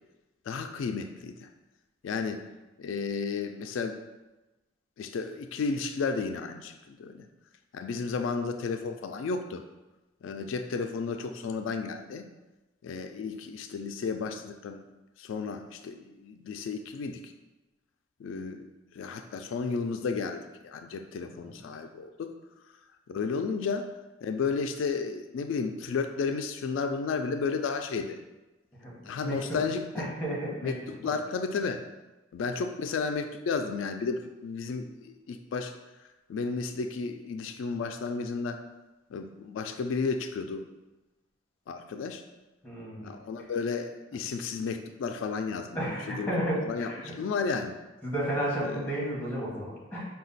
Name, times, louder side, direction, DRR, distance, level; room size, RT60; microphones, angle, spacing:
voice 1, 0.5-1.5 2.0-2.4 2.8-4.0 5.0-7.3 7.7-9.6 10.2-12.3 12.8-14.8 15.2-17.3 18.2-18.7 18.9-22.3 23.1-23.9 24.2-28.2 29.0-30.1 30.6-31.8 32.3-35.7 36.3-38.6 39.1-40.6 41.7-42.2 43.0-47.7 48.6-48.8, left 5 dB, 85° left, 6 dB, 0.3 m, -33 dB
voice 2, 28.8-29.6 29.9-30.8 42.6-43.1 45.7-47.1 48.0-50.0, equal, 5° left, -5 dB, 1.3 m, -32 dB
4.9 x 2.3 x 3.9 m, 1.1 s
head